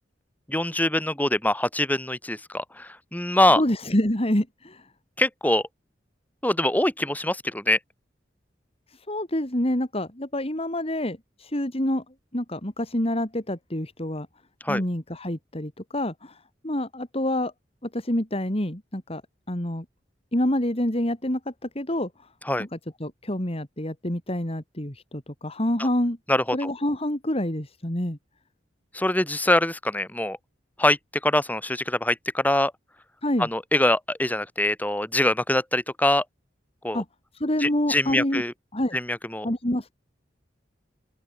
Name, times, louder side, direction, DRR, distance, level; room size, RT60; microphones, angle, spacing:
voice 1, 0.5-3.6 5.2-5.6 6.4-7.8 14.6-14.8 22.5-22.7 26.3-26.7 28.9-30.4 30.8-31.0 31.2-32.7 33.4-36.2 36.8-37.0 37.6-38.5 38.9-39.5, left 1 dB, 10° left, 7.5 m, -23 dB
voice 2, 3.6-4.9 9.1-12.0 12.3-14.3 14.7-17.5 17.9-19.2 19.5-19.9 20.3-22.3 22.6-22.7 23.0-26.2 26.5-28.2 33.2-33.5 36.9-37.1 37.3-38.4 38.7-39.0 39.4-39.9, left 1 dB, 35° left, 3.4 m, -27 dB
open air
head